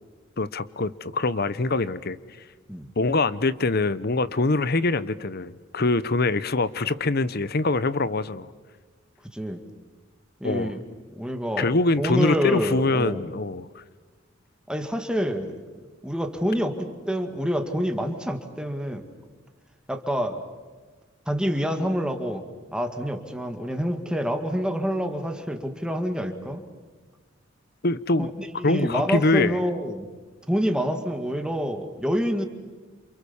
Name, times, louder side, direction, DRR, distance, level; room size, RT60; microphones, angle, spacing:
voice 1, 0.4-2.2 3.0-8.5 10.4-10.7 11.6-13.8 27.8-28.3 28.6-29.6, left 3 dB, 50° left, 16 dB, 1.0 m, -24 dB
voice 2, 10.4-10.8 11.2-13.4 14.7-19.1 19.9-20.4 21.3-22.4 22.7-26.6 28.2-30.1 30.5-32.5, equal, 5° right, 6 dB, 2.1 m, -27 dB
28.5 x 28.0 x 7.2 m, 1.4 s
head